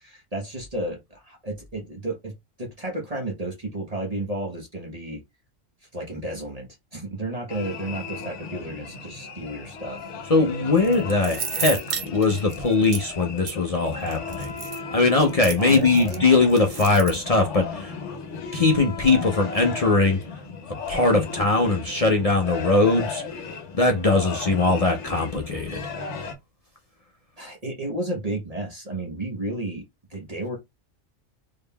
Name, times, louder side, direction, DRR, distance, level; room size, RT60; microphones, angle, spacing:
voice 1, 0.0-2.3 2.6-5.2 5.9-10.0 10.8-11.3 15.6-16.2 27.4-29.8 30.1-30.6, right 1 dB, 35° right, 1.0 m, -32 dB
sound 1, 7.5-26.3, left 4 dB, 70° left, 1.1 m, -36 dB
voice 2, 10.3-14.5 14.9-17.9 18.5-20.2 20.7-23.2 23.7-25.8, left 3 dB, 40° left, 0.5 m, -21 dB
sound 2, 10.8-13.0 13.5-13.6 14.1-16.2 16.5-17.2, right 7 dB, 55° right, 0.5 m, -32 dB
3.6 x 3.6 x 2.2 m
omnidirectional pair, 1.3 m